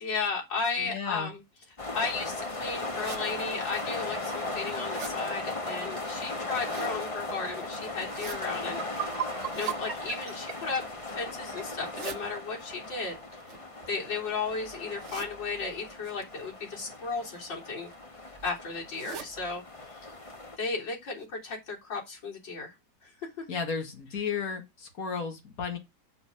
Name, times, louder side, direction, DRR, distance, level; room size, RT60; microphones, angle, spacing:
voice 1, 0.0-1.4 1.9-9.2 9.5-10.8 11.1-13.2 13.9-17.9 18.4-19.6 20.0-20.1 20.6-22.7 23.4-23.5, left 4 dB, 80° left, 4.2 m, -34 dB
voice 2, 0.8-1.3 23.5-25.8, left 5 dB, 50° left, 2.3 m, -33 dB
sound 1, 1.8-20.6, left 2 dB, 20° left, 1.0 m, -37 dB
sound 2, 2.9-3.2 3.9-4.0 4.4-5.2 6.3-7.0 7.9-8.4 9.4-9.8 10.5-11.0 11.7-12.2 13.3-14.3 15.0-15.3 16.0-16.2 17.3-17.5 17.9-18.0 18.2-18.3 18.9-19.3 19.7-19.8 20.1-20.2 20.8-20.9 21.2-21.3, right 6 dB, 45° right, 1.2 m, -43 dB
sound 3, 8.2-8.3 8.6-11.7, right 10 dB, 75° right, 1.5 m, -37 dB
6.9 x 6.5 x 5.0 m
omnidirectional pair, 2.0 m